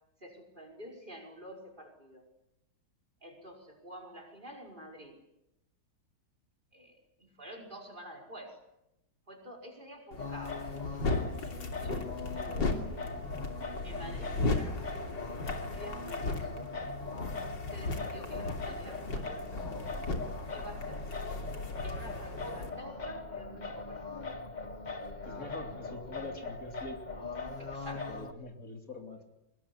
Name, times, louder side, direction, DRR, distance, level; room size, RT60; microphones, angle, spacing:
voice 1, 0.2-2.2 3.2-5.1 6.7-6.9 7.4-8.6 9.3-10.7 11.8-13.1 13.8-14.9 15.7-16.7 17.7-19.9 20.5-21.1 21.8-24.0 27.6-28.1, equal, 25° right, 4 dB, 5.3 m, -48 dB
sound 1, 10.1-22.7, left 3 dB, 80° left, 3.7 m, -36 dB
Singing, 10.2-28.3, left 3 dB, 25° left, 1.5 m, -41 dB
voice 2, 25.2-27.0 28.1-29.3, left 2 dB, 50° left, 3 dB, 3.7 m, -44 dB
24.5 x 21.5 x 10.0 m, 0.87 s
omnidirectional pair, 1.9 m